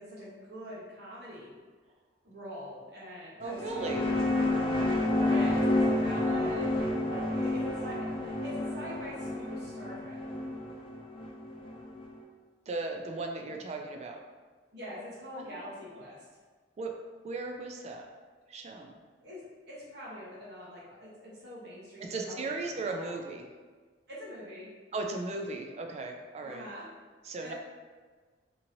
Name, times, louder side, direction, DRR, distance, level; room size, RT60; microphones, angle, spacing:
voice 1, 0.0-1.5 2.2-4.5 5.2-10.2 14.7-16.3 19.2-23.1 24.1-24.7 26.4-26.9 27.4-27.5, equal, 70° right, -7 dB, 0.9 m, -44 dB
sound 1, 3.4-12.1, left 1 dB, 30° left, 0.5 m, -30 dB
voice 2, 3.4-4.1 12.7-14.2 15.4-15.6 16.8-16.9 17.2-18.0 18.5-19.0 22.1-23.5 24.9-26.7 27.2-27.5, right 3 dB, 40° right, 3 dB, 0.3 m, -36 dB
2.9 x 2.7 x 2.6 m, 1.4 s
head